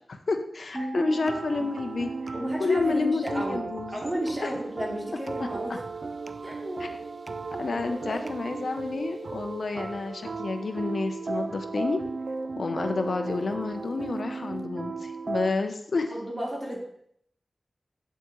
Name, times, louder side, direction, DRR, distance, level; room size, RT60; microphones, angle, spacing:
voice 1, 0.0-2.1 2.6-4.0 4.4-4.5 5.4-5.5 6.8-6.9 7.6-12.0 12.6-16.1, left 3 dB, 75° left, 7 dB, 0.7 m, -29 dB
voice 2, 0.7-1.2 2.3-3.6 3.9-5.8 6.4-6.8 7.7-8.2 16.1-16.8, equal, 25° right, -4 dB, 2.9 m, -33 dB
sound 1, 0.7-3.7, right 5 dB, 50° right, 1.2 m, -48 dB
sound 2, 1.1-15.5, right 4 dB, 70° right, 0.4 m, -36 dB
8.5 x 7.1 x 3.1 m, 0.69 s
wide cardioid pair, 65°, 0 cm